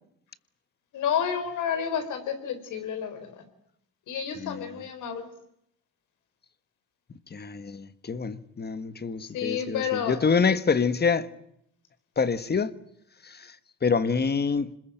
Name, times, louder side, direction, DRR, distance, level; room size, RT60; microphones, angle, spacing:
voice 1, 0.9-3.4 4.1-5.3 9.3-10.2, left 8 dB, 80° left, 4.5 m, -30 dB
voice 2, 4.4-4.8 7.1-11.3 12.2-12.8 13.2-14.7, left 5 dB, 35° left, 1.5 m, -27 dB
26.5 x 21.0 x 9.2 m
cardioid pair, 90°, 30 cm